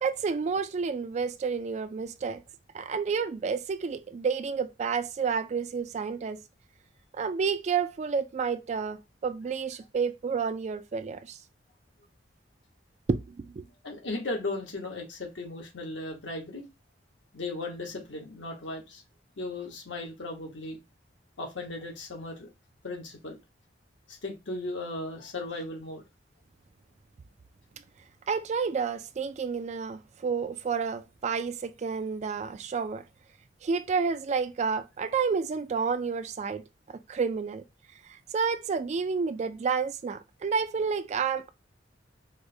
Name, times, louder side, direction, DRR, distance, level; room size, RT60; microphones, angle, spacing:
voice 1, 0.0-2.4 2.7-6.4 7.2-11.4 13.1-13.7 28.3-33.0 33.6-36.6 37.1-37.6 38.3-41.5, right 5 dB, 40° right, 0.3 m, -30 dB
voice 2, 13.8-16.6 17.3-19.0 19.4-20.8 21.4-22.5 22.8-23.4 24.1-26.0, left 2 dB, 75° left, 1.1 m, -36 dB
4.7 x 2.2 x 2.6 m
head